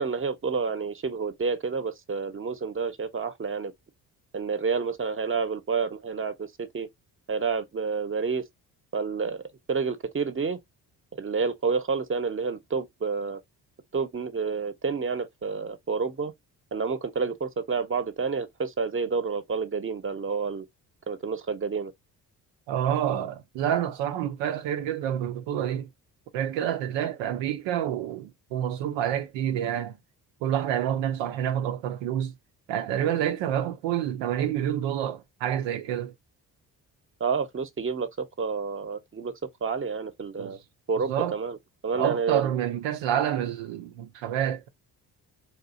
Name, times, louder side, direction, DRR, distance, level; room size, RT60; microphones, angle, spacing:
voice 1, 0.0-3.7 4.3-6.9 7.3-8.4 8.9-9.4 9.7-10.6 11.1-13.4 13.9-16.3 16.7-20.6 21.1-21.9 37.2-39.3 39.6-40.6 40.9-41.6 41.8-42.5, right 5 dB, 30° right, 0.9 m, -29 dB
voice 2, 22.7-25.9 26.3-30.0 30.4-32.3 32.7-36.1 40.4-40.6 41.1-41.3 41.9-44.7, right 10 dB, 80° right, 0.6 m, -28 dB
3.7 x 2.7 x 2.6 m
hypercardioid pair, 50°, 44 cm